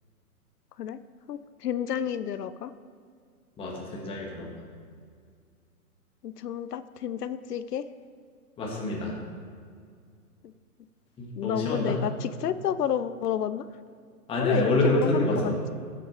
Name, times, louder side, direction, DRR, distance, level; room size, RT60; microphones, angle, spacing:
voice 1, 1.3-2.7 6.2-7.9 10.4-10.5 11.4-13.7 14.4-15.5, left 9 dB, 90° left, 13 dB, 0.6 m, -30 dB
voice 2, 3.6-4.5 8.6-9.1 11.2-12.0 14.3-15.5, left 2 dB, 10° left, -2 dB, 1.5 m, -27 dB
12.5 x 7.7 x 3.3 m, 2.2 s
hypercardioid pair, 150°, 46 cm